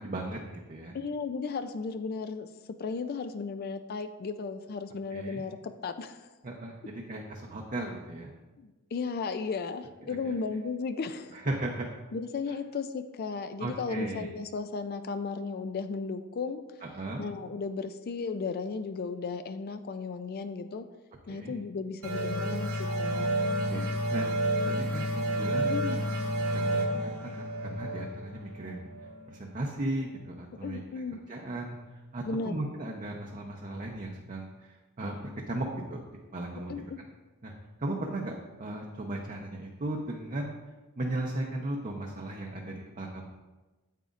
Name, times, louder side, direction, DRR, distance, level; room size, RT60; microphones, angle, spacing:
voice 1, 0.0-1.0 5.1-5.4 6.4-8.3 10.0-10.2 11.3-11.9 13.6-14.3 16.9-17.2 21.3-21.5 23.5-23.9 24.1-24.3 24.7-26.2 26.5-28.9 29.3-30.8 31.3-31.8 32.1-36.0 36.3-36.7 37.0-37.1 37.4-37.5 37.8-40.5 41.0-43.3, right 1 dB, 35° right, 0 dB, 0.7 m, -36 dB
voice 2, 0.9-2.5 2.8-6.2 8.6-11.4 12.1-16.6 17.2-20.9 21.3-23.3 25.7-26.0 30.6-31.2 32.3-32.6 36.7-37.0, left 4 dB, 45° left, 9 dB, 0.4 m, -35 dB
sound 1, 22.0-29.3, right 1 dB, 80° right, 2.1 m, -30 dB
9.1 x 8.2 x 2.5 m, 1.2 s
head